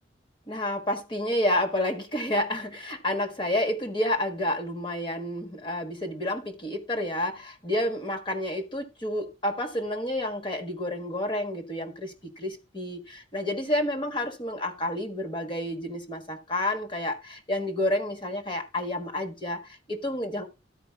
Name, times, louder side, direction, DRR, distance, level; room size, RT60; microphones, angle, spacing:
voice 1, 0.5-20.5, left 1 dB, 25° left, 1.5 m, -30 dB
13.0 x 4.9 x 3.5 m
head